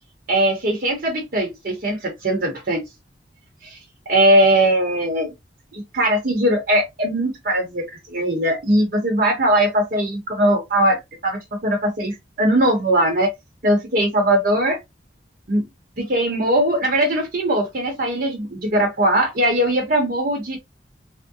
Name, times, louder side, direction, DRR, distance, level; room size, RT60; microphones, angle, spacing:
voice 1, 0.3-2.8 3.6-3.8 4.1-5.3 5.7-13.3 13.6-14.8 15.5-15.6 16.0-20.6, right 1 dB, 55° right, 0.8 m, -20 dB
3.5 x 2.0 x 2.6 m
head